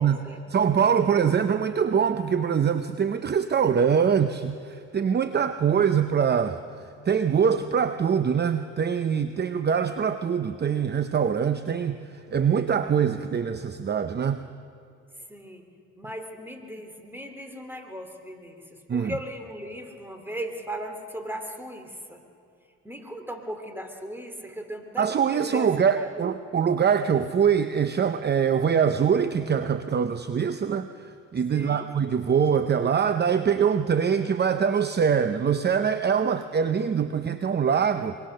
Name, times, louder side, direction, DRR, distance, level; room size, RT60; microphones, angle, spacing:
voice 1, 0.5-6.6 7.0-14.4 18.9-19.1 25.0-38.2, right 7 dB, 35° right, 10 dB, 0.8 m, -23 dB
voice 2, 15.3-15.7 16.0-22.2 22.8-25.1 25.3-26.2 31.5-31.8, equal, 5° right, 5 dB, 2.9 m, -37 dB
25.0 x 22.5 x 6.6 m, 2.6 s
cardioid pair, 90°, 30 cm